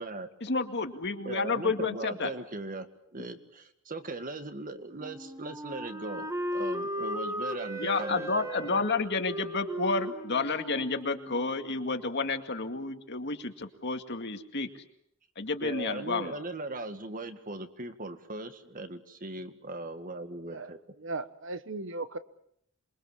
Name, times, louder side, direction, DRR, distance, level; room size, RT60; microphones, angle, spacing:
voice 1, 0.4-2.3 7.8-14.7 15.4-16.4, left 3 dB, 55° left, 6 dB, 2.2 m, -30 dB
voice 2, 1.2-2.9 3.1-8.3 8.8-8.9 15.6-20.8, right 2 dB, 40° right, 8 dB, 2.0 m, -39 dB
Wind instrument woodwind instrument, 5.0-11.8, equal, 15° right, 2.4 m, -37 dB
voice 3, 20.5-22.2, right 3 dB, 65° right, 12 dB, 1.3 m, -37 dB
27.0 x 23.0 x 7.3 m, 0.72 s
head